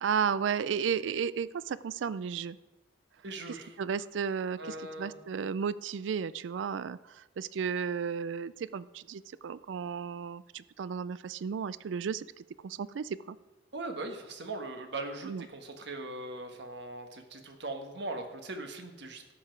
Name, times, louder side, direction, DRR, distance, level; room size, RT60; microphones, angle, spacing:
voice 1, 0.0-2.6 3.8-7.0 7.4-12.2 12.6-13.4 15.2-15.5, right 6 dB, 85° right, 18 dB, 0.4 m, -33 dB
voice 2, 3.2-3.8 4.6-5.2 13.7-19.3, right 2 dB, 65° right, 5 dB, 1.4 m, -40 dB
12.0 x 7.8 x 4.6 m, 1.2 s
head